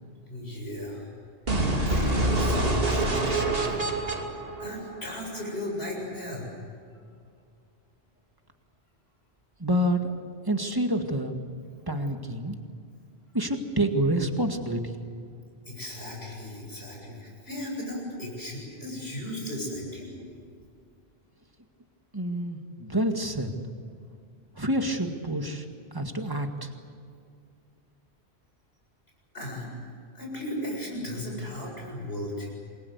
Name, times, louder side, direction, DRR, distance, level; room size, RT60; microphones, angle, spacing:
voice 1, 0.3-1.1 1.8-3.8 4.6-6.5 15.7-20.2 29.3-29.7 30.1-32.5, left 1 dB, 65° left, -1 dB, 7.9 m, -35 dB
sound 1, 1.5-5.4, right 2 dB, 60° right, 2.8 m, -26 dB
voice 2, 9.6-10.1 10.5-11.3 11.9-12.6 13.3-14.9 15.3-15.4 22.1-23.5 24.6-25.7 25.9-26.7, right 1 dB, 20° right, 4 dB, 2.0 m, -27 dB
28.0 x 22.0 x 8.2 m, 2.3 s
omnidirectional pair, 1.1 m